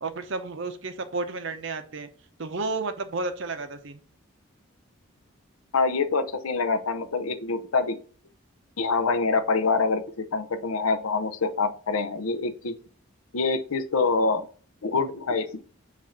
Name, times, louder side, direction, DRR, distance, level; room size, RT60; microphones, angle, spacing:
voice 1, 0.0-2.1 2.4-4.0, right 3 dB, 65° right, 8 dB, 0.7 m, -32 dB
voice 2, 5.7-8.0 8.8-12.8 13.3-14.4 14.8-15.6, left 4 dB, 90° left, 9 dB, 0.7 m, -25 dB
7.2 x 2.6 x 5.8 m, 0.42 s
head